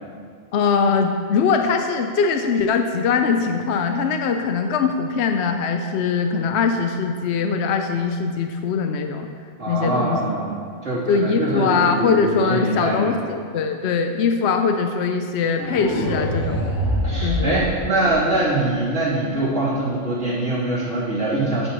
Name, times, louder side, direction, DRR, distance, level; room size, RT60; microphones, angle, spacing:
voice 1, 0.5-9.3 9.7-10.2 11.1-16.6 17.2-17.6, left 5 dB, 70° left, 5 dB, 0.8 m, -21 dB
voice 2, 9.6-10.6 10.8-13.1 17.0-21.7, right 2 dB, 75° right, -10 dB, 3.5 m, -23 dB
sound 1, 15.6-18.6, equal, 15° left, 1.3 m, -25 dB
14.5 x 7.8 x 3.0 m, 2.1 s
omnidirectional pair, 1.3 m